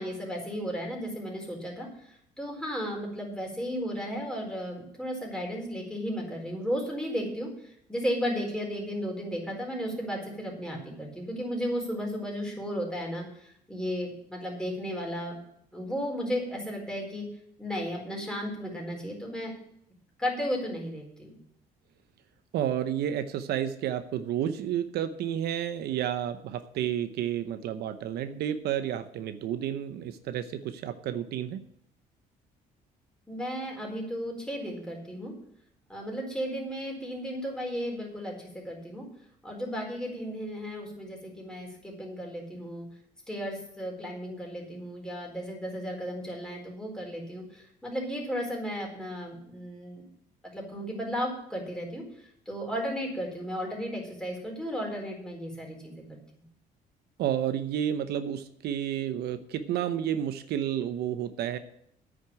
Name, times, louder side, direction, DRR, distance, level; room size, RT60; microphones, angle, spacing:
voice 1, 0.0-15.3 15.7-17.3 17.6-19.5 20.2-21.4 33.3-35.3 35.9-39.0 39.4-42.9 43.3-50.1 50.4-52.0 52.5-56.2, equal, 5° left, -1 dB, 4.3 m, -34 dB
voice 2, 22.5-31.6 57.2-61.6, right 10 dB, 75° right, 10 dB, 0.8 m, -31 dB
9.5 x 6.4 x 8.8 m, 0.70 s
cardioid pair, 110°, 17 cm